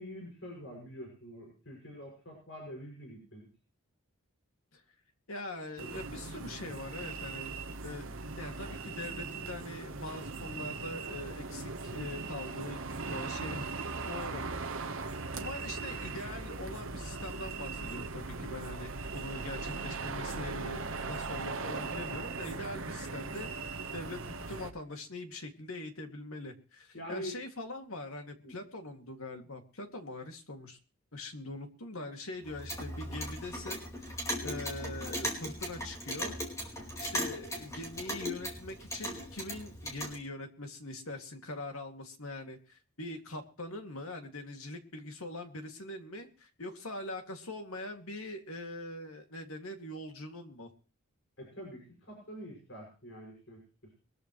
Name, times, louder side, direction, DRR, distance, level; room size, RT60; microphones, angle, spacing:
voice 1, 0.0-3.5 26.9-27.3 28.4-28.6 34.4-34.6 51.4-53.9, equal, 55° left, -1 dB, 6.8 m, -45 dB
voice 2, 5.3-7.6 7.8-8.1 8.4-12.8 13.1-13.7 14.1-14.4 15.0-30.8 31.1-36.4 37.0-50.7, left 2 dB, 70° left, 5 dB, 2.6 m, -42 dB
sound 1, 5.8-24.7, right 4 dB, 65° right, 1.3 m, -39 dB
Clock, 32.4-40.2, equal, 15° left, 4.6 m, -38 dB
23.0 x 14.0 x 3.2 m, 0.35 s
head